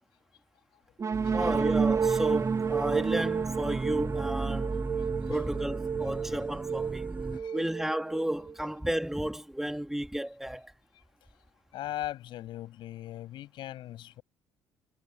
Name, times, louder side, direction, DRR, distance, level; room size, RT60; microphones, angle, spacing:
sound 1, 1.0-8.7, right 6 dB, 40° right, 1.4 m, -31 dB
sound 2, 1.1-7.4, right 3 dB, 20° right, 7.4 m, -36 dB
voice 1, 1.3-4.8 5.3-7.1 7.5-10.7, right 1 dB, 5° right, 2.3 m, -33 dB
voice 2, 11.7-14.2, left 13 dB, 70° left, 8.0 m, -39 dB
supercardioid pair, 70°, 8 cm